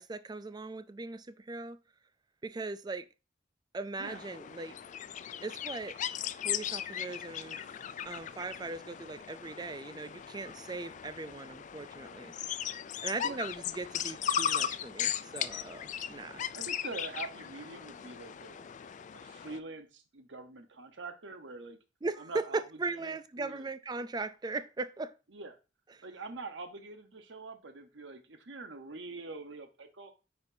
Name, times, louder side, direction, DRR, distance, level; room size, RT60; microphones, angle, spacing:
voice 1, 0.0-1.8 2.4-3.0 3.7-4.8 5.4-5.9 6.4-7.6 8.1-12.3 13.0-16.4 22.0-25.1 26.0-26.1, right 3 dB, 20° right, 0.4 m, -39 dB
sound 1, 4.0-19.6, left 9 dB, 45° left, 0.3 m, -38 dB
voice 2, 16.5-18.6 19.1-21.8 22.2-22.6 22.9-23.7 25.3-25.6 26.0-30.1, right 3 dB, 75° right, 1.0 m, -45 dB
9.5 x 4.4 x 2.7 m
head